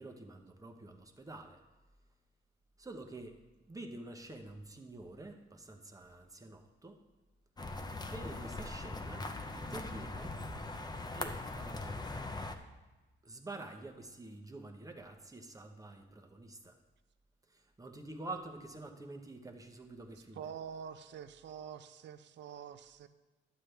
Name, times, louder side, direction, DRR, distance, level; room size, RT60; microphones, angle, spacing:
voice 1, 0.0-1.6 2.8-3.4 3.6-7.0 8.0-9.3 9.5-10.3 11.1-12.5 13.2-16.7 17.5-20.5, right 2 dB, 15° right, 4 dB, 1.0 m, -48 dB
sound 1, 7.6-12.6, left 2 dB, 20° left, 0.7 m, -41 dB
voice 2, 20.3-23.1, right 8 dB, 65° right, 11 dB, 0.6 m, -46 dB
11.5 x 7.6 x 3.4 m, 1.2 s
cardioid pair, 90°, 20 cm